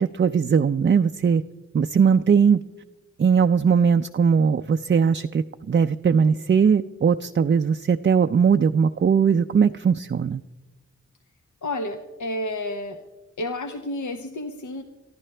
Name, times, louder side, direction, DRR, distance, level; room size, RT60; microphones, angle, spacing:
voice 1, 0.0-1.4 1.7-2.6 3.2-10.4, right 6 dB, 35° right, 8 dB, 0.4 m, -19 dB
voice 2, 11.6-13.0 13.4-14.8, left 1 dB, 70° left, 5 dB, 1.0 m, -30 dB
23.0 x 14.0 x 3.3 m, 1.1 s
cardioid pair, 55°, 31 cm